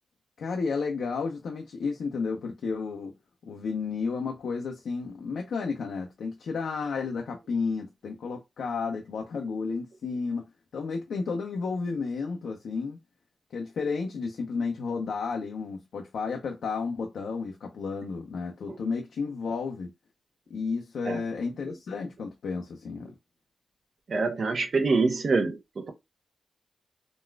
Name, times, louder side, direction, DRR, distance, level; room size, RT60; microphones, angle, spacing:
voice 1, 0.4-3.1 3.4-10.5 10.7-13.0 13.5-19.9 20.5-23.1, left 4 dB, 85° left, 0.5 m, -32 dB
voice 2, 24.1-25.9, right 3 dB, 65° right, 0.7 m, -26 dB
4.0 x 2.3 x 2.2 m
cardioid pair, 50°, 0 cm